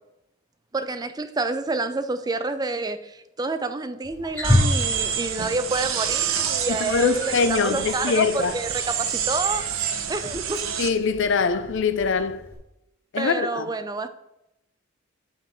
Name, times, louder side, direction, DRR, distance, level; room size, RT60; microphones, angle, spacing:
voice 1, 0.7-9.7 10.1-10.7 13.2-14.1, right 3 dB, 20° right, 0.4 m, -28 dB
Wild animals, 4.0-12.6, left 1 dB, 10° left, 2.8 m, -31 dB
sound 1, 4.4-10.9, right 8 dB, 75° right, 0.8 m, -28 dB
voice 2, 6.7-8.5 10.8-12.4 13.1-13.7, left 5 dB, 60° left, 0.5 m, -23 dB
7.6 x 4.4 x 4.7 m
head